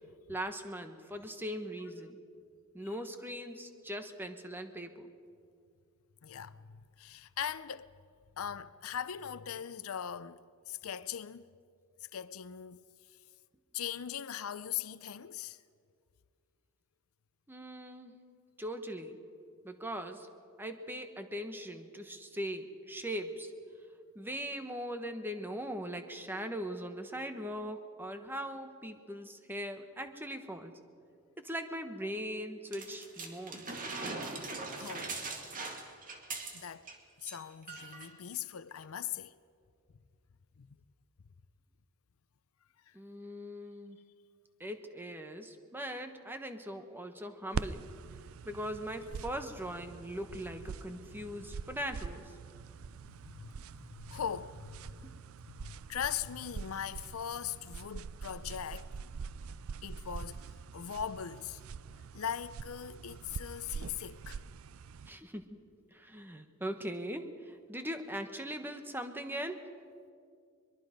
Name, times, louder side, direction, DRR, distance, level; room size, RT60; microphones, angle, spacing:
voice 1, 0.3-2.2 2.7-5.1 17.5-18.1 18.6-19.2 19.6-20.3 20.6-23.5 24.1-30.7 31.4-33.6 42.9-44.0 44.6-47.9 48.4-52.3 65.1-65.6 65.9-69.6, equal, 10° right, 1.2 m, -40 dB
voice 2, 6.2-7.9 8.4-10.4 10.7-11.4 12.1-12.8 13.7-15.6 34.7-35.1 36.5-36.9 37.2-39.4 40.6-40.7 42.9-43.0 52.9-55.1 55.4-58.9 59.8-61.6 61.9-64.4, left 9 dB, 75° left, 0.5 m, -40 dB
sound 1, 32.7-36.9 37.2-37.4 37.7-38.1 38.8-38.9, right 3 dB, 40° right, 2.3 m, -41 dB
sound 2, 47.5-65.1, right 5 dB, 75° right, 0.4 m, -44 dB
23.0 x 22.5 x 5.2 m
head